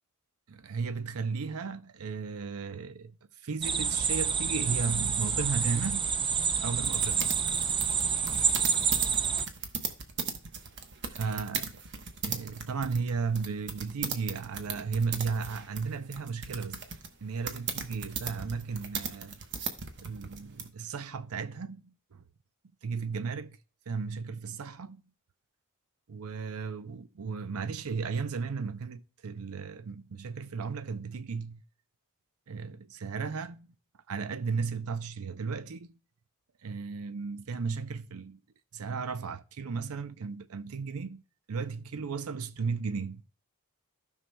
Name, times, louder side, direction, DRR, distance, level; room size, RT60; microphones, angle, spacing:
voice 1, 0.5-3.1 3.4-6.1 6.6-7.4 11.2-11.8 12.2-16.8 17.2-19.4 20.0-22.2 22.8-23.6 23.9-25.0 26.1-31.6 32.5-33.7 34.1-35.9 36.6-38.4 38.7-41.2 41.5-43.2, right 5 dB, 70° right, 0.6 m, -35 dB
sound 1, 3.6-9.5, right 6 dB, 25° right, 0.4 m, -28 dB
sound 2, 6.8-20.7, right 6 dB, 55° right, 1.0 m, -37 dB
16.0 x 5.6 x 2.2 m
head